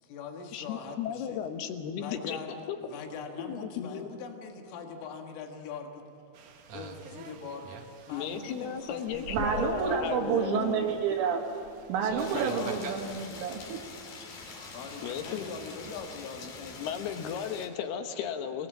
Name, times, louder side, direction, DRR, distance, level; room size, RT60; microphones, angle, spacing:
voice 1, 0.0-1.5 2.0-6.0 6.7-11.4 12.5-12.8 14.7-16.9, left 5 dB, 90° left, 3 dB, 4.3 m, -42 dB
voice 2, 0.5-2.4 2.7-2.8 3.4-4.1 8.1-10.9 12.3-12.4 15.0-15.5 16.8-18.7, left 8 dB, 70° left, 7 dB, 2.7 m, -35 dB
sound 1, 6.3-16.0, right 4 dB, 65° right, 2.1 m, -45 dB
voice 3, 9.3-13.8, right 6 dB, 80° right, 0 dB, 4.1 m, -29 dB
sound 2, 12.2-17.7, left 4 dB, 50° left, 3.6 m, -45 dB
28.5 x 19.5 x 7.5 m, 2.6 s
omnidirectional pair, 5.6 m